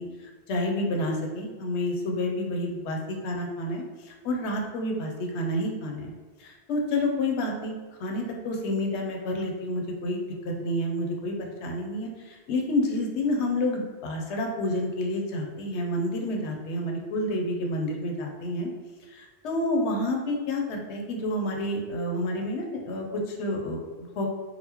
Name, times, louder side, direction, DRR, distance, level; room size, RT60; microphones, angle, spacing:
voice 1, 0.0-6.1 6.4-7.7 8.0-18.7 19.1-24.3, left 1 dB, 80° left, 1 dB, 0.9 m, -29 dB
4.1 x 2.1 x 2.8 m, 1.3 s
omnidirectional pair, 1.2 m